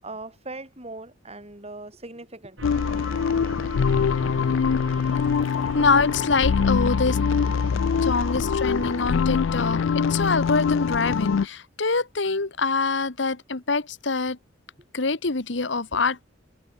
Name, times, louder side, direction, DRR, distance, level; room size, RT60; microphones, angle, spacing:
voice 1, 0.0-3.1 3.9-4.2 4.5-4.8 8.0-8.2, right 2 dB, 35° right, 5.7 m, -41 dB
sound 1, 2.6-11.5, left 6 dB, 85° left, 0.4 m, -23 dB
sound 2, 2.6-9.0, right 1 dB, 75° right, 7.4 m, -39 dB
voice 2, 5.5-7.2 8.0-14.4 14.9-16.2, left 4 dB, 65° left, 1.4 m, -25 dB
head